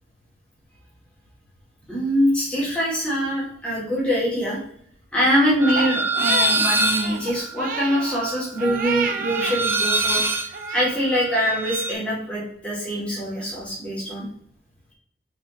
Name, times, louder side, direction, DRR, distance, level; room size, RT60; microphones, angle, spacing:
voice 1, 1.9-4.6 5.1-14.3, equal, 5° left, -8 dB, 2.2 m, -24 dB
sound 1, 5.6-11.9, right 2 dB, 15° right, 0.5 m, -24 dB
Crying sobbing, 5.7-9.6 9.9-11.0, right 5 dB, 50° right, 0.7 m, -31 dB
5.3 x 4.5 x 4.1 m, 0.66 s
head